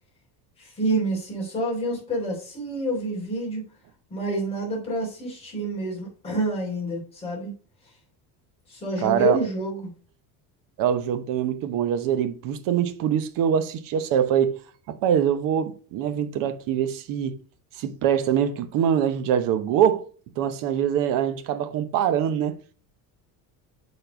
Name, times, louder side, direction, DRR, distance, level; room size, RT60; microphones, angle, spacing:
voice 1, 0.6-3.6 4.1-7.5 7.8-7.9 8.7-9.9, right 1 dB, 15° left, 3.4 m, -28 dB
voice 2, 9.0-9.4 10.8-14.6 14.9-17.4 17.8-20.1 20.4-22.6, right 9 dB, 55° right, 1.0 m, -23 dB
7.0 x 4.2 x 5.1 m
cardioid pair, 180°, 39 cm